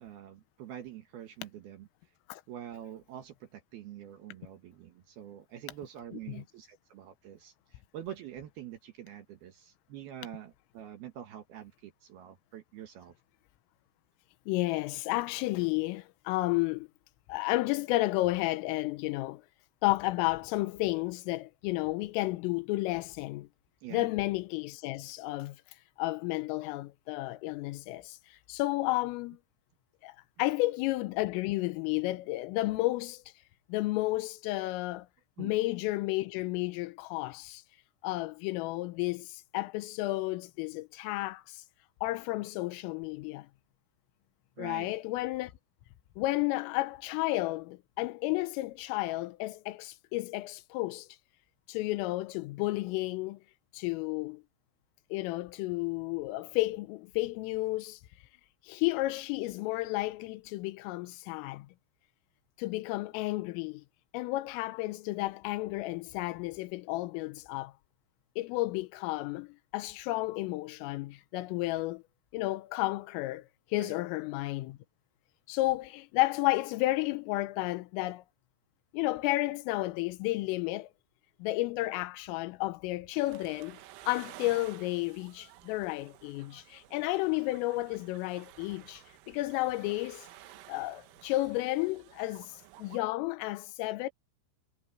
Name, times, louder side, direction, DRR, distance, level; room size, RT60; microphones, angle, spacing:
voice 1, 0.0-1.9 2.5-13.1 23.8-24.1 35.4-35.5 44.6-44.9 73.8-74.0, right 11 dB, 65° right, 2.7 m, -46 dB
voice 2, 14.5-16.9 17.3-19.4 19.8-23.5 23.9-25.6 26.0-29.4 30.0-33.2 33.7-35.1 35.4-37.6 38.0-41.6 42.0-43.5 44.6-45.5 46.2-51.1 51.7-53.4 53.7-54.4 55.1-58.0 58.7-61.7 62.6-63.8 64.1-67.7 68.4-72.0 72.3-74.8 75.5-78.2 78.9-80.9 81.4-83.8 84.1-90.3 90.7-92.5 92.8-94.1, left 19 dB, 85° left, 3.5 m, -32 dB
sound 1, 83.1-93.0, right 14 dB, 90° right, 3.9 m, -53 dB
omnidirectional pair, 5.8 m